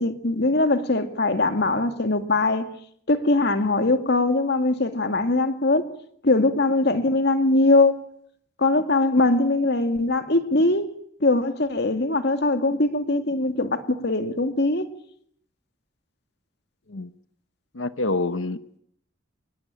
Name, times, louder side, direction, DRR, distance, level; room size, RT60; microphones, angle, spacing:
voice 1, 0.0-2.7 3.1-5.9 6.2-8.0 8.6-10.9 11.2-14.9, left 2 dB, 60° left, 2.4 m, -21 dB
voice 2, 17.7-18.8, left 2 dB, 75° left, 1.1 m, -27 dB
26.5 x 21.0 x 9.0 m
head